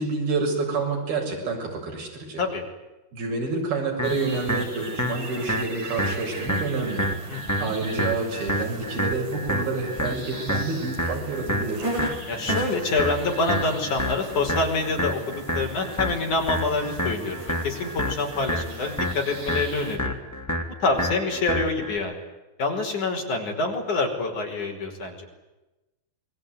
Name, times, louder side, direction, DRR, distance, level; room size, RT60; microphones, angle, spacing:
voice 1, 0.0-2.4 3.1-7.1 7.6-11.8, right 3 dB, 75° right, 0 dB, 9.2 m, -28 dB
sound 1, 4.0-22.0, equal, 5° left, 2.7 m, -29 dB
sound 2, 4.0-20.0, right 2 dB, 50° right, 7.2 m, -39 dB
voice 2, 7.3-7.7 12.2-15.2 15.5-20.2 20.8-22.2 22.6-25.3, left 3 dB, 50° left, 2 dB, 6.6 m, -26 dB
28.0 x 22.0 x 9.7 m, 1.1 s
omnidirectional pair, 4.4 m